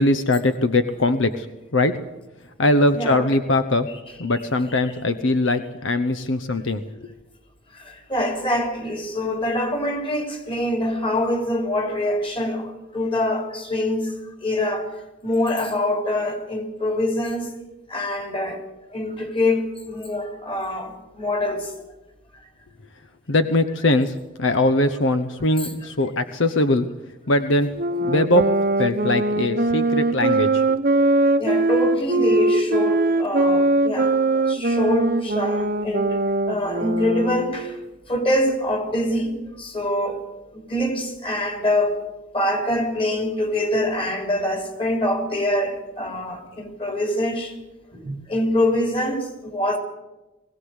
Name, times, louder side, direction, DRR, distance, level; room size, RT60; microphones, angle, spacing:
voice 1, 0.0-1.5 1.7-1.9 2.6-3.9 4.2-6.8 23.3-26.9 27.3-27.7 28.0-28.5 28.8-30.6, left 2 dB, 70° left, 0.9 m, -21 dB
voice 2, 2.9-3.3 7.8-14.1 14.4-14.9 15.2-17.5 17.9-18.6 18.9-21.7 25.6-25.7 31.4-36.1 36.5-37.7 38.1-40.2 40.5-42.0 42.3-47.5 47.9-49.8, left 1 dB, 30° left, 3.3 m, -24 dB
sound 1, 27.7-37.8, right 2 dB, 45° right, 0.9 m, -21 dB
21.5 x 16.5 x 8.1 m
head